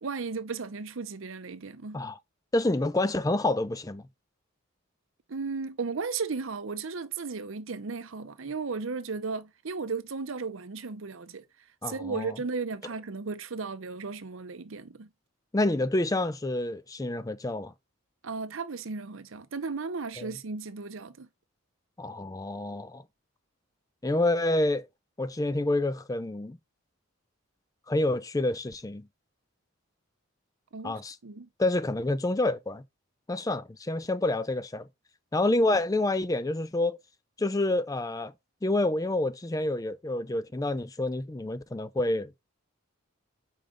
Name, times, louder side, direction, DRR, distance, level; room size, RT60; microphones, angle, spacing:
voice 1, 0.0-2.0 5.3-11.4 11.8-15.1 18.2-21.3 30.7-31.5, right 4 dB, 70° right, 0.7 m, -35 dB
voice 2, 2.5-4.1 11.8-12.4 15.5-17.7 20.2-20.3 22.0-23.0 24.0-24.9 25.2-26.6 27.9-29.1 30.8-31.2 31.6-32.8 33.3-34.9 35.3-37.0 37.4-38.3 38.6-42.4, left 2 dB, 15° left, 0.4 m, -28 dB
5.0 x 5.0 x 3.8 m
head